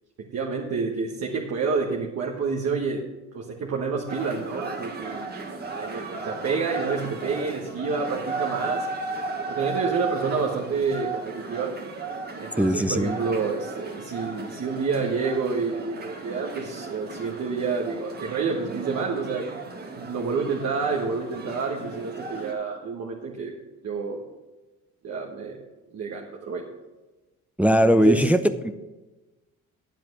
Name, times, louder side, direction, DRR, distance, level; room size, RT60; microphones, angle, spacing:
voice 1, 0.2-3.0 3.3-5.3 5.7-8.9 9.5-11.7 12.4-19.4 20.0-23.5 23.8-24.2 25.0-25.6 25.9-26.7 27.9-28.3, right 4 dB, 55° right, -1 dB, 1.3 m, -28 dB
sound 1, 4.1-22.5, right 4 dB, 35° right, 1.6 m, -35 dB
voice 2, 12.6-13.2 27.6-28.7, equal, 5° right, 9 dB, 0.5 m, -20 dB
9.6 x 7.5 x 6.0 m, 1.1 s
cardioid pair, 90°, 30 cm